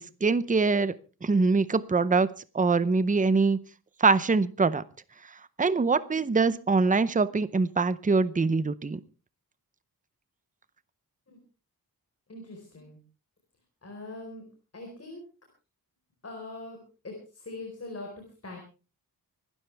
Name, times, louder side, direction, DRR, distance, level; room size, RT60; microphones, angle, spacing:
voice 1, 0.2-0.9 1.2-2.3 2.5-3.6 4.0-4.8 5.6-9.0, right 4 dB, 20° right, 16 dB, 0.7 m, -23 dB
voice 2, 12.3-13.0 13.8-14.5 14.7-15.2 16.2-18.6, left 2 dB, 40° left, 2 dB, 4.4 m, -42 dB
25.0 x 12.5 x 3.4 m, 0.35 s
wide cardioid pair, 155°, 38 cm